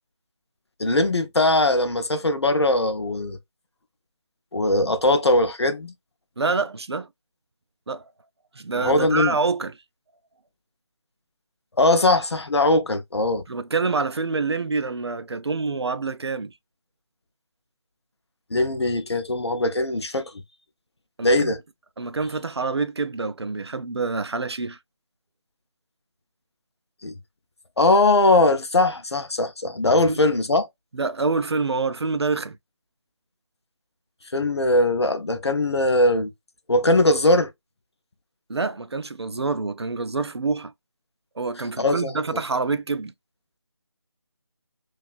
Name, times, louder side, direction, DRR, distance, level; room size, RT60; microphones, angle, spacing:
voice 1, 0.8-3.4 4.5-5.9 8.8-9.4 11.8-13.4 18.5-20.3 21.2-21.6 27.0-27.1 27.8-30.7 34.3-36.3 36.7-37.5 41.8-42.1, left 2 dB, 60° left, 0.6 m, -20 dB
voice 2, 6.4-7.1 7.9-8.0 8.5-9.7 13.5-16.5 21.2-21.6 22.0-24.8 30.1-30.2 30.9-32.6 38.5-40.7 41.4-43.1, right 4 dB, 60° right, 0.4 m, -26 dB
2.6 x 2.3 x 2.4 m
figure-of-eight pair, 160°, 15 cm